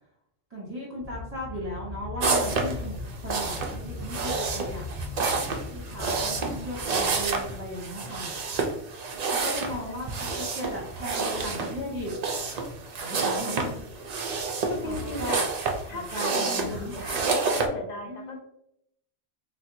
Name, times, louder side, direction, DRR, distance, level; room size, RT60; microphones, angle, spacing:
voice 1, 0.5-4.9 5.7-8.3 9.3-12.1 13.0-13.7 14.8-15.3 15.9-17.0 18.0-18.4, equal, 40° right, -5 dB, 1.0 m, -36 dB
sound 1, 1.0-8.1, left 4 dB, 20° right, 1.3 m, -40 dB
sound 2, 2.2-17.7, right 4 dB, 55° right, 0.5 m, -29 dB
voice 2, 9.8-10.3 13.1-13.9 14.7-15.5 15.8-17.2 17.7-18.4, left 2 dB, 50° left, 2 dB, 0.6 m, -38 dB
4.2 x 2.2 x 2.5 m, 0.78 s
omnidirectional pair, 1.1 m